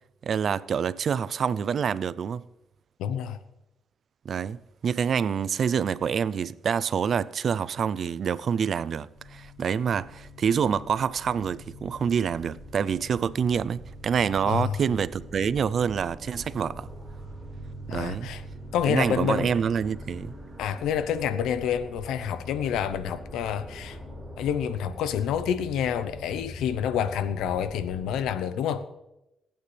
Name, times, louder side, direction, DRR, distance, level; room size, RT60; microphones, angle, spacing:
voice 1, 0.2-2.4 4.2-16.9 17.9-18.3 18.9-20.3, right 7 dB, 55° right, 0.4 m, -27 dB
voice 2, 3.0-3.4 14.4-14.8 17.9-18.4 18.7-19.5 20.6-24.0 24.4-28.8, left 9 dB, 85° left, 0.8 m, -28 dB
sound 1, 9.1-28.3, left 1 dB, 15° right, 5.1 m, -43 dB
20.5 x 8.9 x 3.3 m
cardioid pair, 90°, 0 cm